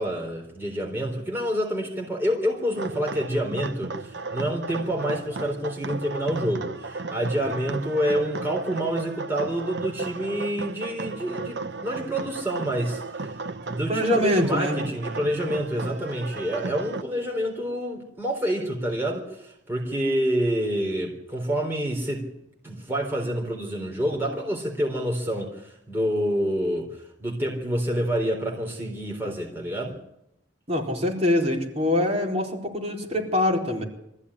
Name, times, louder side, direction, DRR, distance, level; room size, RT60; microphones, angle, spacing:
voice 1, 0.0-13.3 13.7-22.3 22.6-30.0, equal, 15° right, 0 dB, 3.8 m, -28 dB
sound 1, 2.8-17.0, right 3 dB, 70° right, 0.9 m, -35 dB
voice 2, 13.9-14.8 30.7-33.8, left 1 dB, 35° right, -1 dB, 4.2 m, -24 dB
24.5 x 15.0 x 9.9 m, 0.84 s
head